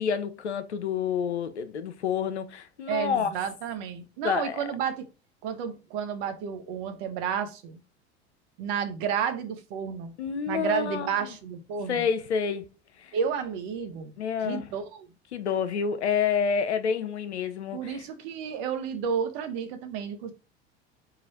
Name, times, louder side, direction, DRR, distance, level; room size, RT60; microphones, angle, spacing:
voice 1, 0.0-3.3 4.2-4.6 10.2-11.3 11.9-12.6 13.0-13.2 14.2-14.7 15.3-18.0, left 7 dB, 90° left, 0.7 m, -28 dB
voice 2, 2.9-5.1 5.4-7.8 8.6-10.1 10.5-12.1 13.1-14.1 14.4-15.1 17.7-20.3, right 7 dB, 60° right, 1.0 m, -31 dB
3.9 x 2.4 x 4.2 m
hypercardioid pair, 80°, 33 cm